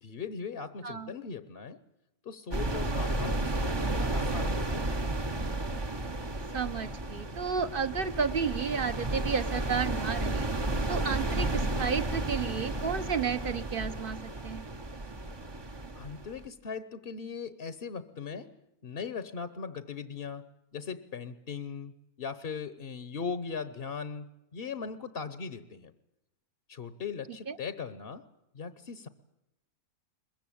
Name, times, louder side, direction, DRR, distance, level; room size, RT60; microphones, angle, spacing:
voice 1, 0.0-1.8 2.2-5.0 15.9-18.6 18.8-25.9 26.7-28.2 28.5-29.1, left 5 dB, 45° left, 13 dB, 1.1 m, -39 dB
sound 1, 2.5-16.5, right 2 dB, 20° right, 0.8 m, -32 dB
voice 2, 6.5-10.5 10.9-14.2 14.4-14.7 27.5-27.6, right 6 dB, 40° right, 12 dB, 1.0 m, -32 dB
22.5 x 22.0 x 8.6 m, 0.91 s
omnidirectional pair, 1.6 m